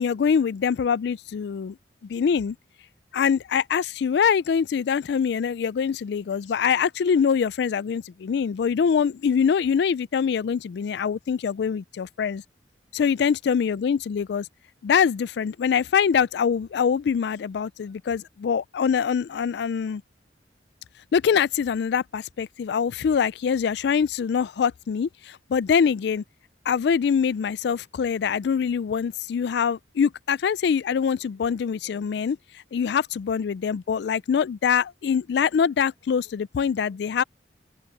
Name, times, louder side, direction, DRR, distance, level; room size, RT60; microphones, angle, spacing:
voice 1, 0.0-1.8 2.1-2.6 3.1-12.4 12.9-14.5 14.8-20.0 21.1-26.2 26.7-32.4 32.7-37.2, left 7 dB, 65° left, 0.3 m, -24 dB
open air
head